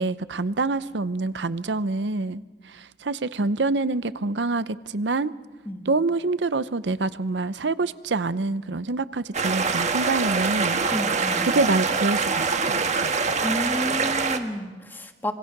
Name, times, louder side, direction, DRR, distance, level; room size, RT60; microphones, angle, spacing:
voice 1, 0.0-2.4 2.7-5.3 5.9-10.8 11.4-13.1, right 3 dB, 80° right, 15 dB, 0.8 m, -26 dB
sound 1, 9.3-14.4, right 4 dB, 40° right, 1.4 m, -24 dB
voice 2, 10.9-11.5 13.4-15.3, equal, 10° left, 6 dB, 1.6 m, -31 dB
26.0 x 22.5 x 6.0 m, 1.3 s
head